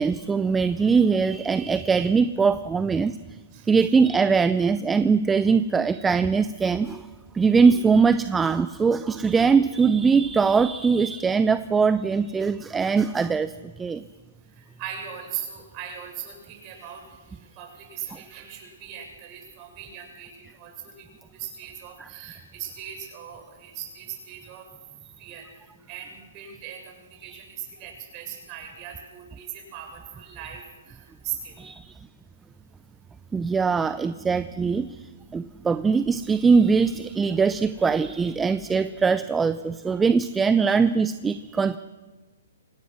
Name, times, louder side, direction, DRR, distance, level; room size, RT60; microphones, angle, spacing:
voice 1, 0.0-3.2 3.7-7.0 7.3-13.5 13.8-14.0 22.0-22.1 31.6-31.8 33.3-34.9 35.3-41.8, right 5 dB, 10° right, 13 dB, 0.6 m, -21 dB
voice 2, 14.6-24.7 25.2-31.6 40.7-40.8, right 9 dB, 35° right, 2 dB, 7.2 m, -39 dB
25.5 x 17.5 x 6.3 m, 1.2 s
hypercardioid pair, 130°, 0 cm